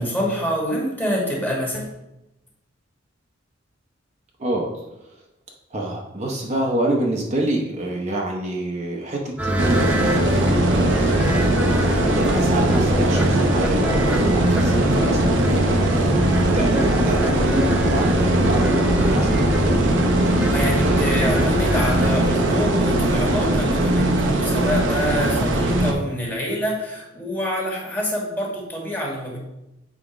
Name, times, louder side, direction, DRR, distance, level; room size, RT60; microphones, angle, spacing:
voice 1, 0.0-1.9 20.5-29.4, equal, 10° left, -2 dB, 1.4 m, -26 dB
voice 2, 4.4-4.8 5.7-9.9 10.6-11.1 11.9-16.2 16.4-19.4 20.0-20.5 20.9-21.0, right 1 dB, 35° right, -1 dB, 0.8 m, -27 dB
sound 1, 9.4-22.1, equal, 5° right, 0.6 m, -25 dB
sound 2, 9.6-25.9, right 1 dB, 70° right, 0.9 m, -20 dB
7.2 x 3.7 x 5.0 m, 0.93 s
head